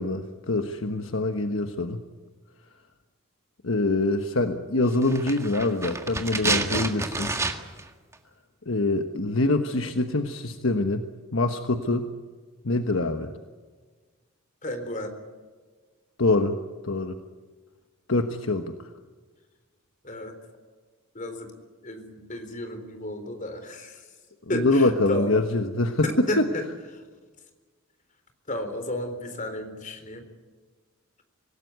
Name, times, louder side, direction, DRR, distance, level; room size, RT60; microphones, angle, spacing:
voice 1, 0.0-2.0 3.6-7.3 8.7-12.1 12.6-13.3 16.2-17.2 18.1-18.8 24.5-26.5, left 2 dB, 65° left, 7 dB, 1.3 m, -25 dB
sound 1, 5.0-7.9 8.1-8.2, right 2 dB, 15° right, 1.8 m, -29 dB
voice 2, 14.6-15.2 20.0-20.3 21.1-21.5 21.8-24.0 24.5-25.3 26.3-26.6 28.5-30.2, left 1 dB, 35° left, 7 dB, 3.8 m, -32 dB
25.5 x 18.0 x 9.5 m, 1.4 s
head